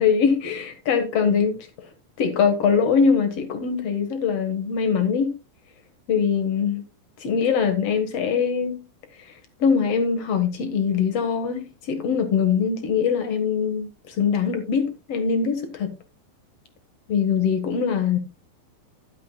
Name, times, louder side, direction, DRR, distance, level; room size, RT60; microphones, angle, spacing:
voice 1, 0.0-1.7 2.2-5.3 6.1-6.8 7.2-8.8 9.6-15.9 17.1-18.2, left 6 dB, 55° left, 1.8 m, -22 dB
11.5 x 11.5 x 2.2 m
omnidirectional pair, 4.5 m